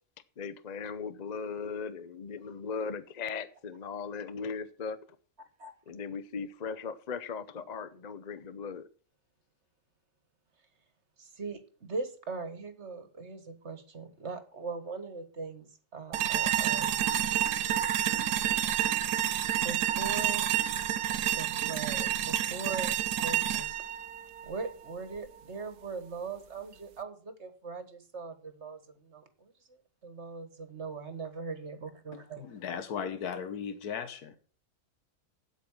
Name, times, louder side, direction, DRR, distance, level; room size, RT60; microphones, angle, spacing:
voice 1, 0.4-5.0 5.9-8.9, left 5 dB, 40° left, 0.6 m, -38 dB
voice 2, 11.2-17.0 19.6-20.5 21.3-23.7 24.4-32.4, right 4 dB, 45° right, 1.7 m, -40 dB
sound 1, 16.1-25.2, right 11 dB, 85° right, 1.3 m, -29 dB
voice 3, 32.1-34.4, left 7 dB, 75° left, 1.6 m, -37 dB
8.8 x 8.4 x 7.2 m
omnidirectional pair, 1.6 m